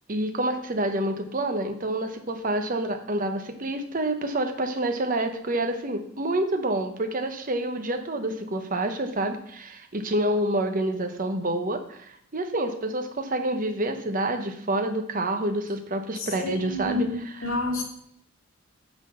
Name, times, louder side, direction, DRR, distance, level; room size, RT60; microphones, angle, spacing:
voice 1, 0.1-17.1 17.4-17.6, right 1 dB, 40° right, 6 dB, 1.0 m, -28 dB
voice 2, 16.2-17.8, left 2 dB, 80° left, 1 dB, 2.1 m, -29 dB
9.6 x 4.0 x 6.4 m, 0.71 s
head